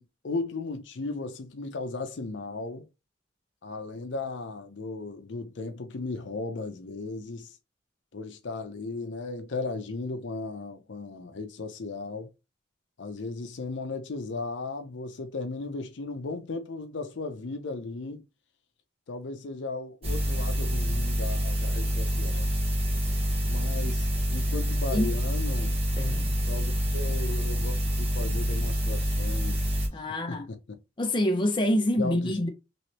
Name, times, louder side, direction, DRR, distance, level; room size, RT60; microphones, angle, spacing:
voice 1, 0.0-2.9 3.6-7.6 8.1-12.3 13.0-18.3 19.1-22.5 23.5-25.7 26.5-29.7 30.3-30.8 32.0-32.4, left 3 dB, 70° left, 0.6 m, -36 dB
sound 1, 20.0-29.9, equal, 30° right, 1.1 m, -27 dB
voice 2, 26.0-26.4 29.9-30.5 31.0-32.5, left 1 dB, 25° left, 0.6 m, -26 dB
3.1 x 3.0 x 2.8 m
head